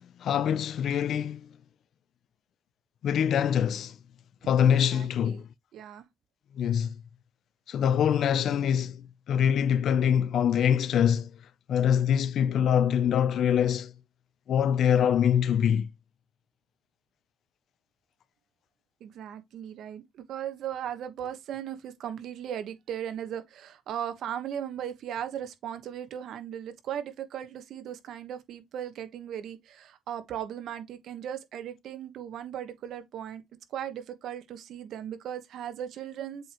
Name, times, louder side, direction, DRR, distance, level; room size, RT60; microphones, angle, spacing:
voice 1, 0.0-1.5 3.0-3.9 4.5-5.5 6.6-6.9 7.7-11.3 11.7-13.9 14.5-15.9, left 8 dB, 70° left, 0.5 m, -24 dB
voice 2, 4.7-5.4 5.7-6.0 19.0-33.4 33.7-36.5, right 10 dB, 75° right, 1.2 m, -37 dB
7.7 x 4.5 x 3.0 m
cardioid pair, 90°, 0 cm